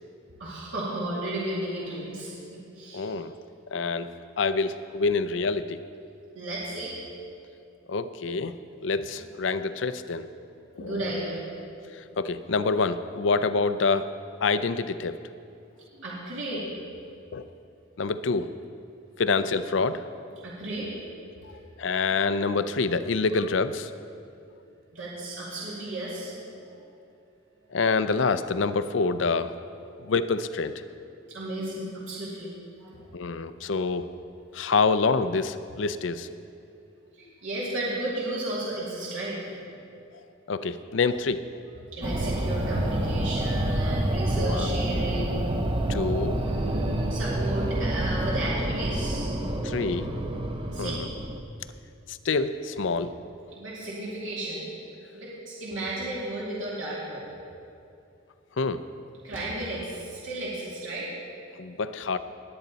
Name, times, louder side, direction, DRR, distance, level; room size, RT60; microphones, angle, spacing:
voice 1, 0.4-3.1 6.3-6.9 10.8-11.4 15.9-16.7 20.4-20.9 21.5-21.6 24.9-26.8 31.3-32.5 32.8-33.1 37.1-39.7 41.7-45.6 46.3-49.4 50.7-51.0 53.5-54.7 55.1-57.2 59.2-61.1, right 1 dB, 85° right, -7 dB, 2.4 m, -34 dB
voice 2, 2.9-3.3 3.7-5.8 7.9-10.3 10.7-11.0 11.9-14.1 14.4-15.2 16.5-16.7 17.3-17.4 18.0-18.5 19.2-20.0 21.8-23.9 27.7-29.5 30.0-30.7 33.1-34.1 34.5-36.3 40.5-41.4 44.4-44.7 45.9-46.4 49.6-50.1 50.8-51.0 52.1-53.1 58.6-58.8 61.6-62.2, left 4 dB, 70° left, 12 dB, 0.5 m, -26 dB
sound 1, 42.0-51.4, right 1 dB, 25° right, 0.7 m, -28 dB
19.5 x 8.8 x 4.1 m, 2.6 s
head